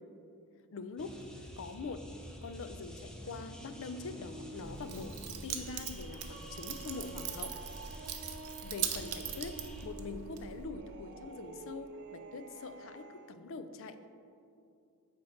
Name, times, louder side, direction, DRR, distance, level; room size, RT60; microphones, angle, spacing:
voice 1, 0.7-1.1 1.6-2.0 2.4-7.6 8.6-14.0, left 4 dB, 60° left, 10 dB, 0.4 m, -44 dB
sound 1, 1.0-9.9, equal, 5° left, 0.7 m, -50 dB
sound 2, 2.9-13.3, right 3 dB, 50° right, 0.4 m, -51 dB
Keys jangling, 4.6-10.6, right 8 dB, 85° right, 0.7 m, -41 dB
7.7 x 4.6 x 5.2 m, 2.6 s
head